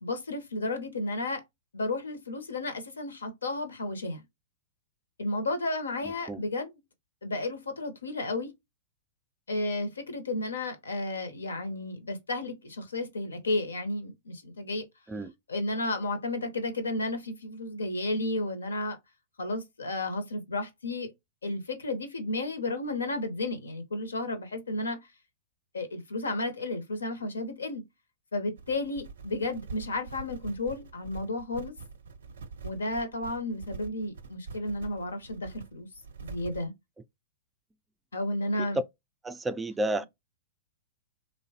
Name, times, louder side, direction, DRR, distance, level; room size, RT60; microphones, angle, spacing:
voice 1, 0.0-1.4 1.7-4.2 5.2-6.7 7.2-8.5 9.5-14.9 15.5-19.0 19.4-21.1 21.4-25.0 25.7-27.8 28.3-31.7 32.6-35.9 36.2-36.7 38.1-38.8, left 2 dB, 85° left, 0.7 m, -32 dB
voice 2, 6.0-6.4 15.1-15.3 38.6-38.7 39.2-40.1, right 1 dB, 15° right, 0.3 m, -32 dB
sound 1, 28.6-36.7, right 5 dB, 75° right, 0.5 m, -44 dB
3.0 x 2.1 x 2.7 m
hypercardioid pair, 105°, 0 cm